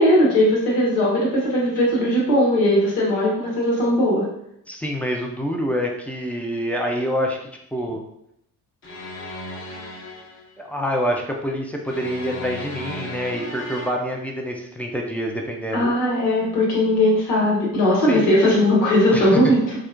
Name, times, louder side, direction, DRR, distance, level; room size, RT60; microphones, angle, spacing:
voice 1, 0.0-4.3 15.7-19.8, left 1 dB, 75° left, -4 dB, 1.2 m, -18 dB
voice 2, 4.7-7.4 7.7-8.0 10.6-15.9 18.1-18.4 19.1-19.5, equal, 5° left, 0 dB, 0.5 m, -26 dB
sound 1, 8.8-10.5 11.9-13.9, left 1 dB, 25° left, 0.9 m, -35 dB
3.7 x 2.1 x 2.5 m, 0.78 s
hypercardioid pair, 45°, 47 cm